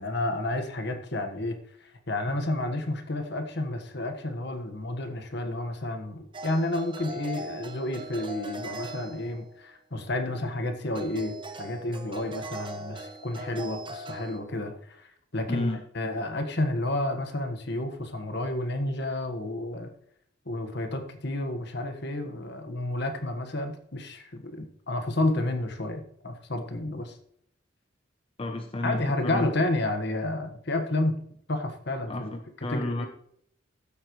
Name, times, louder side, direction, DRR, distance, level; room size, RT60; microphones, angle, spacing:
voice 1, 0.0-15.1 15.3-19.9 20.4-27.2 28.8-31.2 31.5-32.3 32.7-33.1, left 1 dB, 60° left, 6 dB, 1.5 m, -31 dB
sound 1, 6.3-9.7 10.9-14.4, right 2 dB, 25° right, 0.9 m, -40 dB
voice 2, 15.5-15.8 28.4-29.5 32.1-33.1, left 2 dB, 30° left, 5 dB, 0.7 m, -31 dB
14.5 x 8.5 x 3.1 m, 0.67 s
head